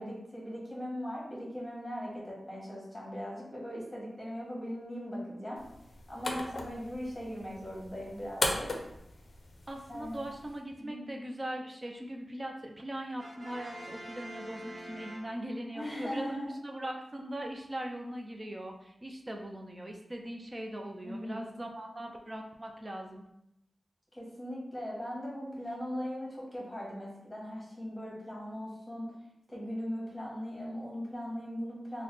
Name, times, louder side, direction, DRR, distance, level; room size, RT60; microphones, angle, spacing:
voice 1, 0.0-5.6 6.1-8.7 9.9-10.3 10.8-11.0 15.7-16.5 21.0-21.4 24.1-29.1 29.5-32.0, equal, 15° left, -4 dB, 1.3 m, -39 dB
sound 1, 5.6-10.6, left 2 dB, 60° left, 0.5 m, -38 dB
voice 2, 9.7-16.4 16.6-23.2, right 1 dB, 25° right, 2 dB, 0.4 m, -40 dB
Brass instrument, 13.2-15.8, right 1 dB, 60° right, 1.0 m, -46 dB
3.2 x 2.1 x 3.9 m, 0.81 s
wide cardioid pair, 105°, 0 cm